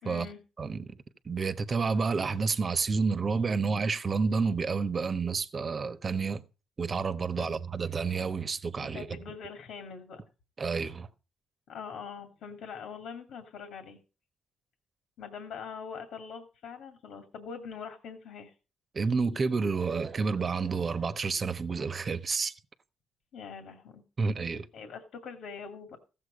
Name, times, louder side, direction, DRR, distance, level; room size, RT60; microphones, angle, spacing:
voice 1, 0.0-0.4 7.4-7.6 8.9-10.2 11.7-14.0 15.2-18.5 23.3-24.0 24.7-26.0, left 6 dB, 75° left, 2.2 m, -43 dB
voice 2, 0.6-1.0 1.2-6.4 6.8-9.1 10.6-11.1 18.9-22.5 24.2-24.7, right 4 dB, 40° right, 1.2 m, -29 dB
15.0 x 7.6 x 5.1 m
cardioid pair, 90°, 0 cm